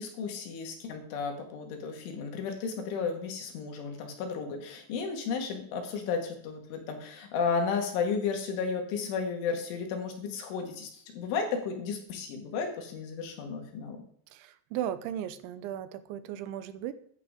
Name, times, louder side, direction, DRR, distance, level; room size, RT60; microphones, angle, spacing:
voice 1, 0.0-14.0, left 5 dB, 80° left, 3 dB, 4.4 m, -33 dB
voice 2, 14.3-16.9, right 11 dB, 85° right, 13 dB, 3.0 m, -36 dB
14.5 x 11.0 x 3.8 m, 0.63 s
omnidirectional pair, 5.4 m